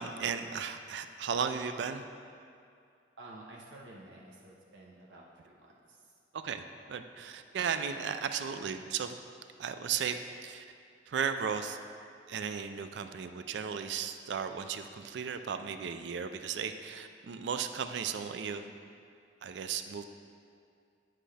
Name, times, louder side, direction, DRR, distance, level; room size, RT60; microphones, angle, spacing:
voice 1, 0.0-2.0 6.3-9.2 9.6-10.6 11.1-11.8 12.3-18.7 19.4-20.0, right 7 dB, 70° right, 8 dB, 0.4 m, -35 dB
voice 2, 3.2-6.1, right 2 dB, 85° right, -3 dB, 0.9 m, -51 dB
8.8 x 7.6 x 3.3 m, 2.3 s
head